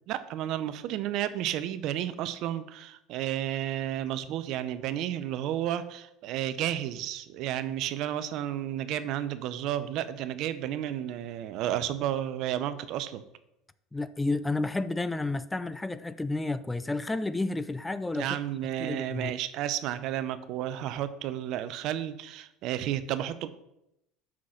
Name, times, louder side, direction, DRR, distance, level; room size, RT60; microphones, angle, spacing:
voice 1, 0.1-13.2 18.1-23.5, right 11 dB, 60° right, 0.6 m, -32 dB
voice 2, 13.9-18.4 18.8-19.3, left 2 dB, 10° left, 0.4 m, -31 dB
6.1 x 5.9 x 6.2 m
supercardioid pair, 100°, 0 cm